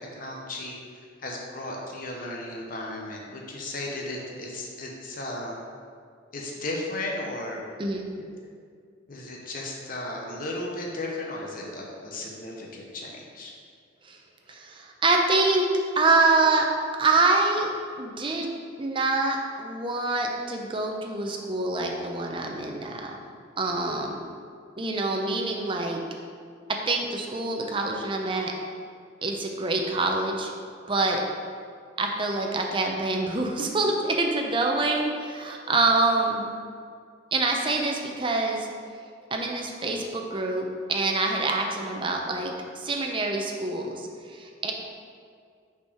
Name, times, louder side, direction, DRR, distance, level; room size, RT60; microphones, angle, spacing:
voice 1, 0.1-0.8 1.2-5.6 6.3-7.6 9.1-13.5, left 2 dB, 45° left, -1 dB, 0.8 m, -35 dB
voice 2, 14.5-15.7 16.0-16.7 17.0-17.7 18.0-18.5 18.8-23.1 23.6-24.2 24.8-26.0 26.7-28.5 29.2-30.5 30.9-31.2 32.0-36.5 37.3-38.7 39.3-44.7, right 3 dB, 25° right, 1 dB, 0.6 m, -26 dB
5.8 x 4.6 x 4.9 m, 2.1 s
head